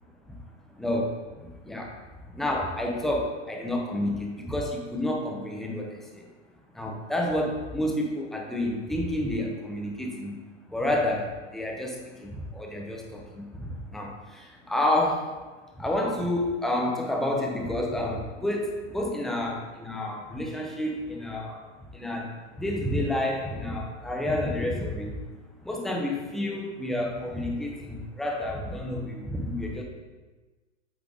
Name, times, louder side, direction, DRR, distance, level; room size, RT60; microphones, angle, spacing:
voice 1, 0.8-1.2 1.6-2.0 2.3-6.2 6.7-10.4 10.7-15.3 15.8-21.6 21.9-25.2 25.6-29.8, left 1 dB, ahead, 0 dB, 0.4 m, -29 dB
8.3 x 3.6 x 3.7 m, 1.3 s
hypercardioid pair, 130°, 38 cm